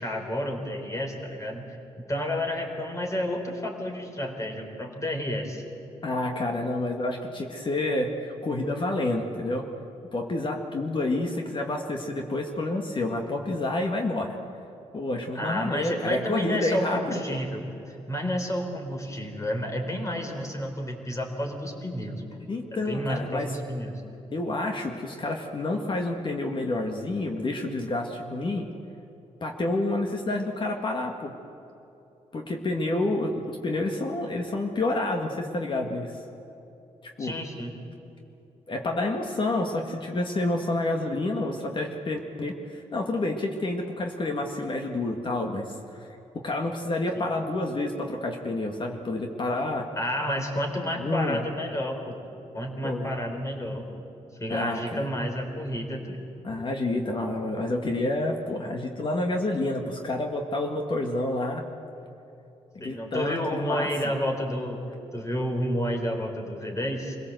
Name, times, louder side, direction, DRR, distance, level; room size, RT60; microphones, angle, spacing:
voice 1, 0.0-1.8 2.1-5.6 15.3-22.2 22.7-24.0 37.2-37.7 47.1-47.3 50.0-52.2 52.5-54.0 54.4-56.2 62.8-64.8 65.1-67.2, equal, 25° left, 3 dB, 4.0 m, -30 dB
voice 2, 6.0-9.7 10.1-14.4 14.9-17.4 22.5-23.5 24.3-28.7 29.4-31.4 32.3-36.1 37.0-37.3 38.7-45.8 46.3-49.9 51.0-51.4 52.8-53.1 54.5-55.1 56.4-61.6 62.7-63.9, left 2 dB, 45° left, 3 dB, 2.0 m, -29 dB
25.0 x 17.0 x 8.0 m, 2.9 s
cardioid pair, 80°, 12 cm